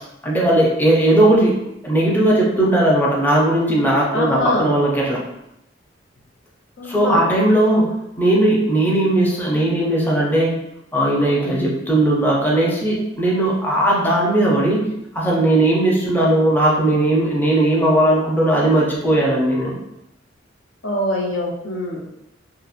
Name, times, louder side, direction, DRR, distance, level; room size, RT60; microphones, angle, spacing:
voice 1, 0.2-1.5 1.8-5.2 6.9-10.6 10.9-14.9 15.1-19.7, right 1 dB, 10° left, -4 dB, 0.4 m, -17 dB
voice 2, 4.1-4.7 6.8-7.3 20.8-22.0, left 1 dB, 85° left, -2 dB, 0.6 m, -24 dB
2.8 x 2.0 x 2.4 m, 0.84 s
head